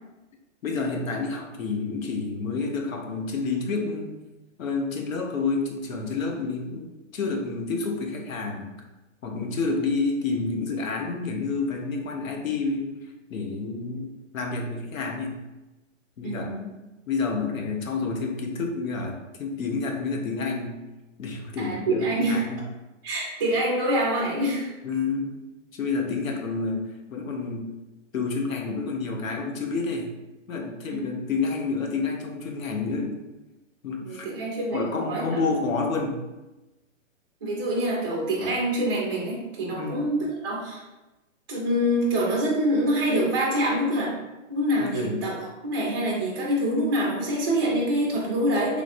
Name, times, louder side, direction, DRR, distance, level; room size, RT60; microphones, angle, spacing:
voice 1, 0.6-4.1 4.6-6.8 7.1-8.7 9.2-13.0 13.3-15.4 16.2-16.7 17.1-20.8 21.2-22.6 24.8-25.3 25.7-27.7 28.1-30.1 30.5-33.2 33.8-34.3 34.7-36.2 39.7-40.0 44.8-45.2, left 4 dB, 90° left, 2 dB, 0.8 m, -29 dB
voice 2, 16.2-16.6 21.6-22.4 23.0-24.7 30.9-31.0 34.0-35.4 37.4-40.8 41.5-44.1 44.5-48.8, right 1 dB, 20° right, -4 dB, 0.3 m, -26 dB
3.2 x 2.5 x 2.5 m, 1.0 s
hypercardioid pair, 145°, 39 cm